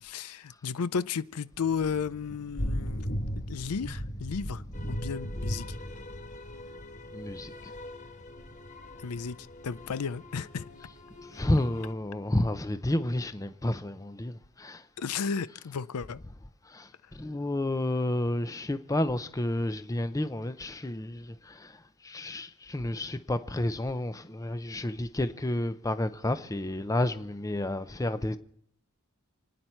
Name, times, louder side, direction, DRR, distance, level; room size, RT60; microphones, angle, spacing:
voice 1, 0.0-3.2 3.5-5.8 9.0-9.4 9.6-10.7 15.0-16.2, left 6 dB, 85° left, 0.5 m, -33 dB
Thunder / Rain, 1.6-11.1, equal, 50° left, 3.1 m, -38 dB
sound 1, 4.7-11.9, left 2 dB, 35° left, 0.9 m, -47 dB
voice 2, 7.1-7.7 10.8-10.9 11.2-14.9 15.6-15.8 16.2-16.3 16.6-28.4, left 1 dB, 15° left, 0.6 m, -31 dB
29.5 x 9.8 x 4.5 m
head